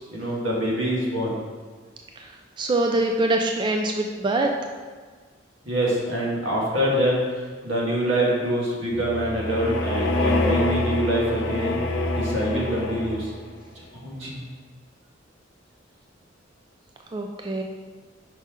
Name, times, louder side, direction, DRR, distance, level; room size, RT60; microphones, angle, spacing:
voice 1, 0.1-1.3 5.7-7.2 7.6-11.8 12.1-13.2 14.0-14.4, right 1 dB, 80° right, -4 dB, 1.7 m, -25 dB
voice 2, 2.6-4.5 17.1-17.6, right 2 dB, 25° right, 2 dB, 0.3 m, -24 dB
sound 1, 8.9-13.5, left 1 dB, 75° left, 0.8 m, -26 dB
5.4 x 5.3 x 3.6 m, 1.5 s
head